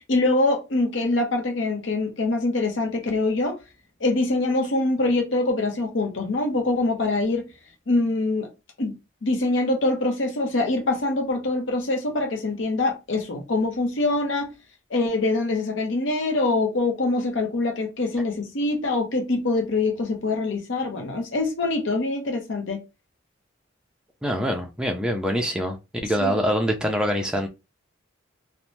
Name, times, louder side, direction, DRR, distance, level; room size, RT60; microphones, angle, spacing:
voice 1, 0.1-3.6 4.0-7.5 7.9-8.5 8.8-8.9 9.2-14.5 14.9-22.8 26.2-26.3, left 2 dB, 65° left, 0.7 m, -24 dB
voice 2, 24.2-25.8 26.0-27.5, equal, 5° right, 0.4 m, -24 dB
2.7 x 2.1 x 3.0 m
head